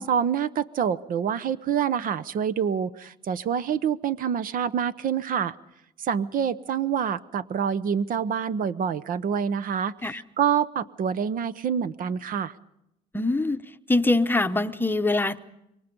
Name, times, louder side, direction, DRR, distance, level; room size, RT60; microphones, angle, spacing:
voice 1, 0.0-5.5 6.0-12.5, right 7 dB, 55° right, 16 dB, 0.8 m, -26 dB
voice 2, 13.1-13.6 13.9-15.4, left 2 dB, 10° left, 9 dB, 0.9 m, -23 dB
26.5 x 23.5 x 5.3 m, 0.81 s
cardioid pair, 110°, 17 cm